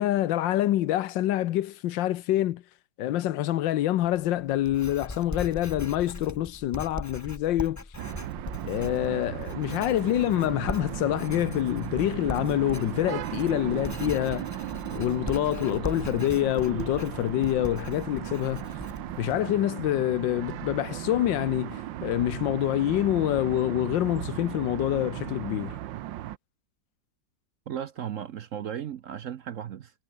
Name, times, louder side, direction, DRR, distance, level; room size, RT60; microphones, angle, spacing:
voice 1, 0.0-2.6 3.0-7.8 8.6-14.6 14.9-18.7 19.2-25.8, left 13 dB, 90° left, 1.5 m, -26 dB
Writing, 4.0-19.4, left 2 dB, 15° left, 0.8 m, -40 dB
sound 1, 8.0-26.4, right 13 dB, 90° right, 1.5 m, -36 dB
voice 2, 27.7-29.9, right 9 dB, 60° right, 0.9 m, -35 dB
omnidirectional pair, 2.0 m